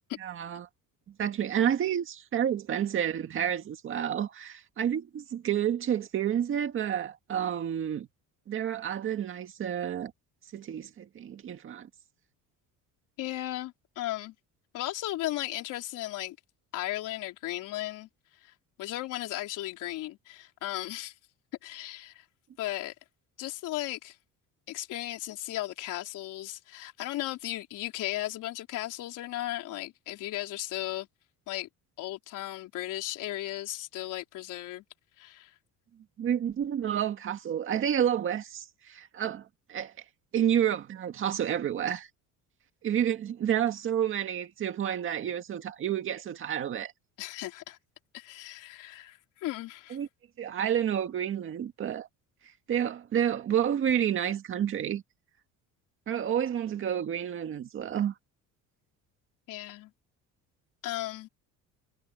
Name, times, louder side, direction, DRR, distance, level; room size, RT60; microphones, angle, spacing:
voice 1, 0.2-0.7 1.2-8.1 8.5-10.1 10.5-11.9 36.2-39.9 40.3-42.1 42.8-46.9 49.9-50.1 50.4-52.1 52.7-55.0 56.1-58.1, right 9 dB, 35° right, 1.9 m, -30 dB
voice 2, 13.2-14.3 14.7-16.4 16.7-18.1 18.4-18.5 18.8-21.1 21.6-22.3 22.6-22.9 23.4-24.2 24.7-31.1 31.5-31.7 32.0-34.8 35.2-35.5 47.2-47.8 48.1-50.0 59.5-59.9 60.8-61.3, left 15 dB, 65° left, 4.0 m, -36 dB
cardioid pair, 170°, 34 cm